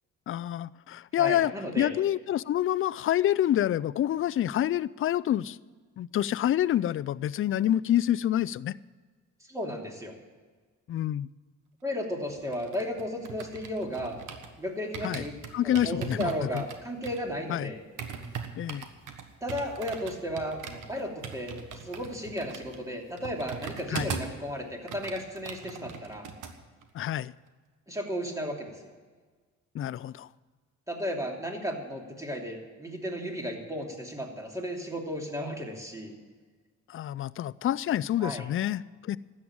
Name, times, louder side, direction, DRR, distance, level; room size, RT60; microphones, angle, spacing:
voice 1, 0.3-1.5 1.8-5.6 6.0-8.7 10.9-11.3 15.0-15.3 15.5-16.6 17.5-17.7 18.6-18.9 23.9-24.1 26.9-27.3 29.7-30.3 36.9-39.2, left 11 dB, 45° left, 18 dB, 0.4 m, -27 dB
voice 2, 1.2-1.9 9.5-10.2 11.8-14.2 14.6-15.3 15.6-17.8 19.4-26.3 27.9-28.9 30.9-36.1 38.2-38.5, equal, 10° right, 1 dB, 2.9 m, -34 dB
sound 1, 12.3-14.6 14.9-24.4 24.7-26.5 26.8-27.1, right 6 dB, 85° right, 1.4 m, -40 dB
13.0 x 8.8 x 8.8 m, 1.5 s
cardioid pair, 90°, 30 cm